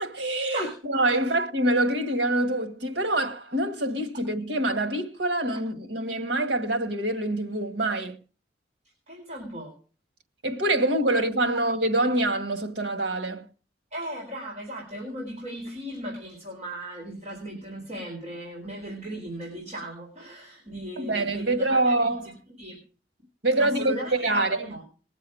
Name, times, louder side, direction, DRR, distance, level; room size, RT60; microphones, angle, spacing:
voice 1, 0.0-8.2 10.4-13.5 21.0-22.3 23.4-24.7, right 1 dB, 80° right, 2.1 m, -25 dB
voice 2, 9.1-9.8 13.9-21.9 22.2-22.3 22.6-22.8 23.6-24.8, right 1 dB, 40° right, 4.5 m, -37 dB
21.0 x 7.6 x 4.9 m
head